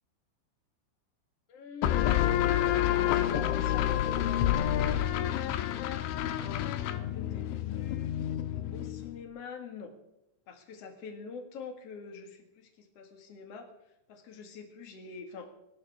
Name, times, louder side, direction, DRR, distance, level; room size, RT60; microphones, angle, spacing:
voice 1, 1.5-2.2 2.8-5.8 6.6-8.1 8.7-9.9 10.5-13.7 14.1-15.5, left 5 dB, 50° left, 5 dB, 1.8 m, -45 dB
sound 1, 1.8-9.2, left 11 dB, 80° left, 3.2 m, -29 dB
26.0 x 12.0 x 3.6 m, 0.84 s
omnidirectional pair, 5.7 m